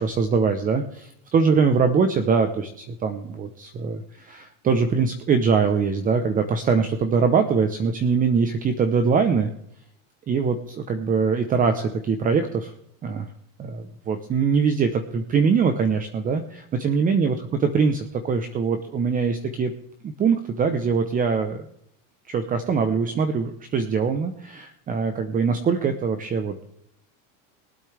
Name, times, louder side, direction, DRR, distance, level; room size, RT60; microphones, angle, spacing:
voice 1, 0.0-9.5 10.3-12.7 13.0-13.3 13.6-17.3 17.6-19.7 20.0-21.7 22.3-26.7, right 5 dB, 20° right, 8 dB, 0.9 m, -23 dB
22.5 x 8.5 x 3.4 m, 0.73 s
supercardioid pair, 150°, 37 cm